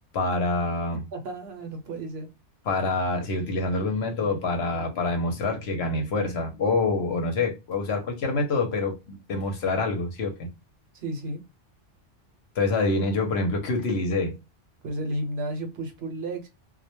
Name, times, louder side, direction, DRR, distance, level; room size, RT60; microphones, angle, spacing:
voice 1, 0.1-1.0 2.7-10.5 12.6-14.3, left 3 dB, 65° left, 0.8 m, -26 dB
voice 2, 1.1-2.3 10.9-11.4 14.8-16.5, right 1 dB, 60° right, 0.8 m, -32 dB
2.2 x 2.1 x 2.8 m
omnidirectional pair, 1.3 m